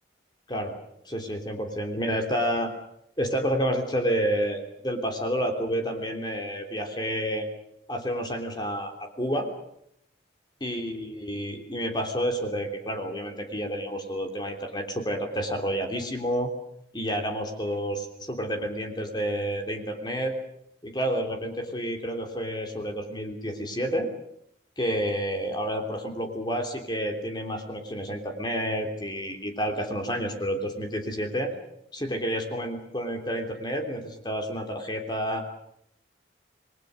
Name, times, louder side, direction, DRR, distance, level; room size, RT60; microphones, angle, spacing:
voice 1, 1.0-2.7 3.2-7.5 7.9-9.5 10.6-16.5 16.9-20.3 20.8-24.1 24.8-31.5 31.9-35.4, equal, 25° left, 4 dB, 3.3 m, -29 dB
28.5 x 21.0 x 6.6 m, 0.73 s
head